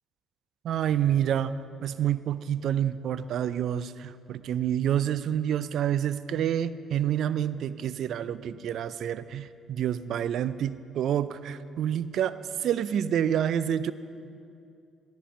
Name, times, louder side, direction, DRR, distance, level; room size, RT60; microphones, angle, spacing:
voice 1, 0.6-13.9, right 10 dB, 60° right, 15 dB, 0.4 m, -28 dB
16.5 x 8.8 x 5.1 m, 2.5 s
hypercardioid pair, 50°, 0 cm